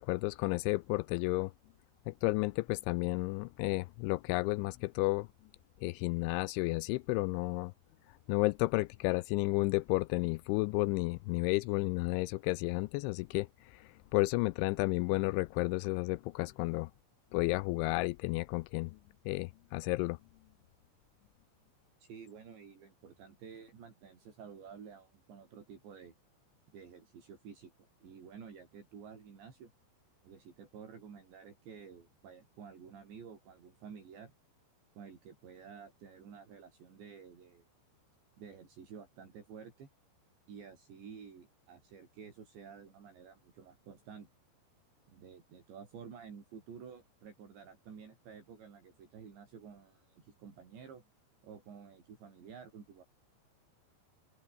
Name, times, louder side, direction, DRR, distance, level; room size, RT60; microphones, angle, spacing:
voice 1, 0.0-1.5 2.1-5.3 5.8-7.7 8.3-16.9 17.3-19.0 19.3-20.2, left 23 dB, 85° left, 2.8 m, -32 dB
voice 2, 22.0-26.2 26.7-27.7 28.0-29.7 30.2-34.3 35.0-37.6 38.4-39.9 40.5-44.3 45.1-51.0 51.4-53.0, right 6 dB, 65° right, 7.1 m, -51 dB
open air
omnidirectional pair, 5.6 m